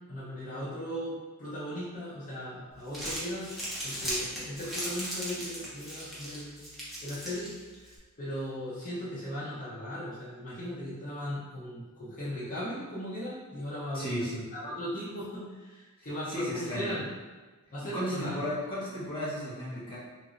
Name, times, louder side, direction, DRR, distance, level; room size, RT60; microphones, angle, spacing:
voice 1, 0.1-3.5 3.8-6.6 7.0-7.5 7.8-17.0 17.7-18.5, equal, 40° left, -11 dB, 0.8 m, -37 dB
Crumpling crinkling, 2.7-8.0, equal, ahead, 0.7 m, -38 dB
voice 2, 13.9-14.5 16.3-16.9 17.9-20.0, equal, 25° left, -10 dB, 1.1 m, -34 dB
2.9 x 2.9 x 2.5 m, 1.3 s
head